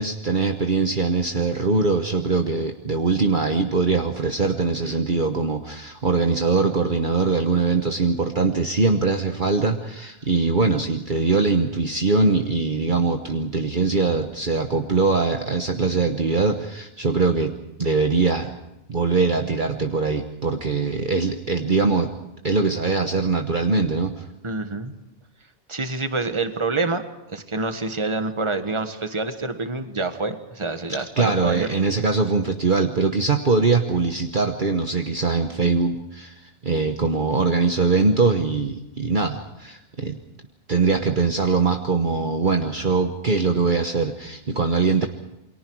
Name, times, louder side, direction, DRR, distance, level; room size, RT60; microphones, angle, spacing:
voice 1, 0.0-17.5 17.8-18.5 18.9-22.1 22.4-24.2 31.2-40.2 40.7-45.1, right 4 dB, 45° right, 5 dB, 1.3 m, -22 dB
voice 2, 24.4-24.9 25.7-27.0 27.3-31.7, right 3 dB, 25° right, 8 dB, 1.6 m, -27 dB
28.5 x 23.0 x 4.7 m, 0.89 s
omnidirectional pair, 1.2 m